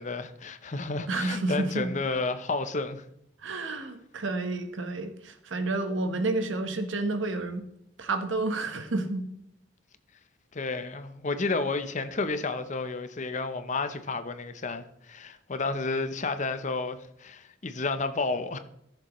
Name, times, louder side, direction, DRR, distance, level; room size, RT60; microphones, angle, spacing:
voice 1, 0.0-3.1 10.5-18.6, left 3 dB, 40° left, 0.7 m, -31 dB
voice 2, 1.1-1.9 3.4-7.7 8.0-9.2, right 2 dB, 85° right, 1.1 m, -30 dB
14.5 x 6.7 x 3.1 m
head